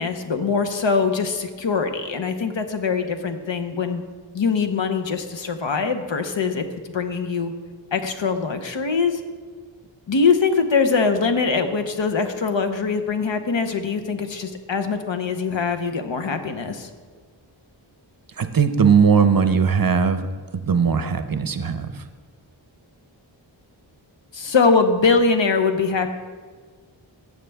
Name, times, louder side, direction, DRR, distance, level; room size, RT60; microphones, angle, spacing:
voice 1, 0.0-4.0 4.3-6.6 6.9-7.5 7.9-9.2 10.1-16.9 24.3-26.1, left 5 dB, 70° left, 7 dB, 0.9 m, -22 dB
voice 2, 18.4-20.3 20.5-22.0, right 6 dB, 50° right, 10 dB, 0.6 m, -19 dB
15.5 x 6.7 x 3.4 m, 1.5 s
wide cardioid pair, 70°, 46 cm